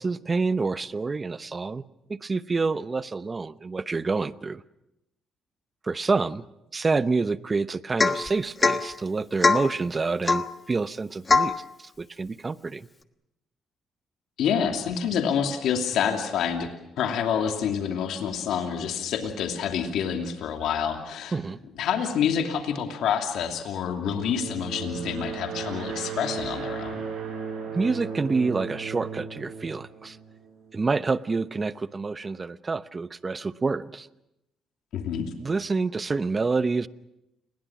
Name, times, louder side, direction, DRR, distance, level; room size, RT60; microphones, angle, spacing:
voice 1, 0.0-1.8 2.1-4.6 5.8-6.4 6.7-11.5 11.8-12.9 21.3-21.6 27.7-30.2 30.7-34.1 35.4-36.9, right 4 dB, 30° right, 14 dB, 0.9 m, -27 dB
Domestic sounds home sounds / Chink clink / Drip, 8.0-8.3 8.6-8.9 9.4-9.7 10.3-10.5 11.3-11.6, left 4 dB, 30° left, 1.3 m, -21 dB
voice 2, 14.4-16.7 17.0-21.4 21.8-27.0 34.9-35.3, left 8 dB, 80° left, 3 dB, 2.8 m, -27 dB
sound 1, 24.1-30.7, right 6 dB, 80° right, 7.1 m, -36 dB
29.5 x 21.5 x 6.1 m, 0.89 s
cardioid pair, 90°, 0 cm